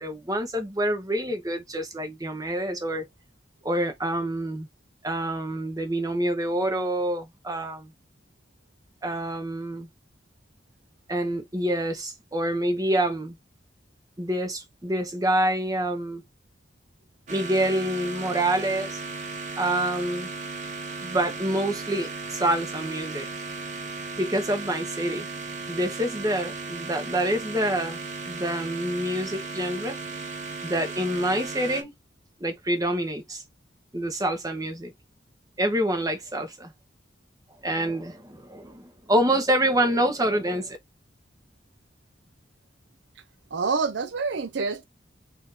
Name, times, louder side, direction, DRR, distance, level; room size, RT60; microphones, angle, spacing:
voice 1, 0.0-3.0 3.6-4.7 5.0-7.9 9.0-9.9 11.1-13.4 14.2-16.2 17.3-19.0 19.6-20.3 21.0-23.3 24.2-25.3 25.7-28.0 28.3-30.0 30.6-31.9 32.4-33.4 33.9-34.9 35.6-36.7 37.6-40.8, right 1 dB, 20° right, 1.2 m, -27 dB
sound 1, 17.3-31.8, right 4 dB, 45° right, 1.0 m, -36 dB
voice 2, 43.5-44.8, right 4 dB, 75° right, 0.6 m, -27 dB
4.1 x 2.7 x 4.2 m
head